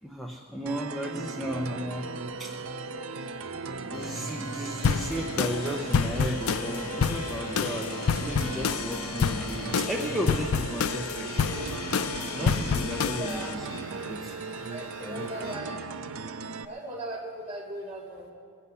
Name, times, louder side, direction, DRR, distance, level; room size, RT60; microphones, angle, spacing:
voice 1, 0.0-2.1 2.4-2.5 3.1-3.4 3.8-11.5 12.3-14.4 15.0-15.6, equal, ahead, -2 dB, 0.8 m, -35 dB
sound 1, 0.7-16.7, right 4 dB, 70° right, 0.5 m, -37 dB
sound 2, 3.9-15.6, left 1 dB, 55° left, 4.0 m, -42 dB
sound 3, 4.8-13.5, left 6 dB, 85° left, 0.4 m, -29 dB
voice 2, 13.2-13.5 14.7-15.8 16.6-18.3, right 1 dB, 30° right, -2 dB, 2.4 m, -38 dB
21.5 x 8.3 x 5.6 m, 2.2 s
head